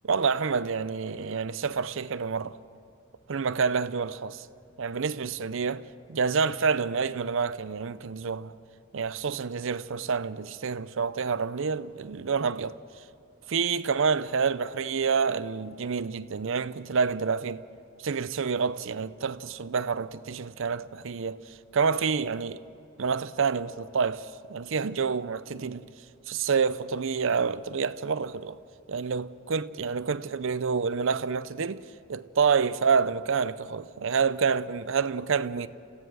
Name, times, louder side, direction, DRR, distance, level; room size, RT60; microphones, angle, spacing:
voice 1, 0.0-2.6 3.3-4.5 4.8-5.8 6.1-8.5 8.9-12.8 13.5-17.6 18.0-21.4 21.7-22.6 23.0-25.9 26.3-28.6 28.9-31.8 32.1-35.7, right 5 dB, 65° right, 0.6 m, -28 dB
27.5 x 16.0 x 6.3 m
head